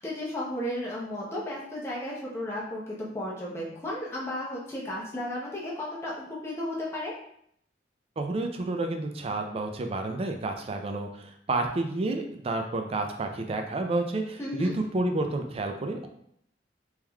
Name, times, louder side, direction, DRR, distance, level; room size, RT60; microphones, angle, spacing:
voice 1, 0.0-7.1 14.4-14.7, left 1 dB, 15° left, -6 dB, 0.7 m, -34 dB
voice 2, 8.2-16.1, right 2 dB, 35° right, 5 dB, 0.4 m, -30 dB
3.5 x 3.0 x 2.3 m, 0.69 s
head